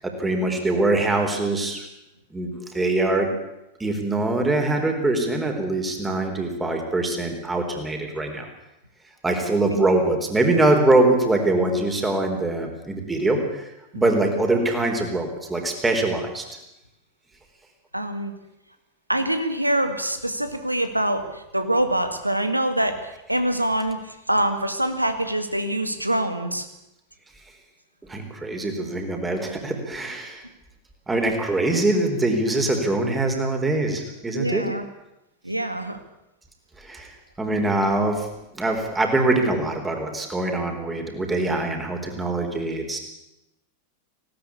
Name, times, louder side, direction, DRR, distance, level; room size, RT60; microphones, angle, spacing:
voice 1, 0.0-1.9 2.3-3.3 3.8-8.5 9.2-16.5 28.0-30.5 31.1-34.7 36.8-38.3 38.5-43.0, right 2 dB, 10° right, 4 dB, 4.1 m, -23 dB
voice 2, 17.9-18.3 19.1-26.7 34.3-34.8 35.4-36.0, right 1 dB, 85° right, 8 dB, 2.0 m, -25 dB
19.0 x 17.5 x 8.5 m, 0.90 s
figure-of-eight pair, 90°, 0 cm